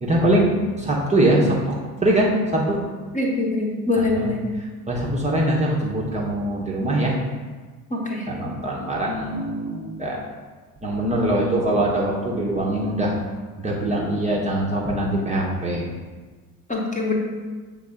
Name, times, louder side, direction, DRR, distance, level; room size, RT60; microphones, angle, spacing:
voice 1, 0.0-1.8 2.0-2.8 4.1-4.3 4.9-7.2 8.3-10.2 10.8-13.1 13.6-15.9, right 1 dB, 15° right, -4 dB, 1.0 m, -22 dB
voice 2, 3.1-4.4 7.9-8.3 16.7-17.1, left 2 dB, 15° left, -2 dB, 1.2 m, -23 dB
7.4 x 3.7 x 3.6 m, 1.4 s
figure-of-eight pair, 60°, 48 cm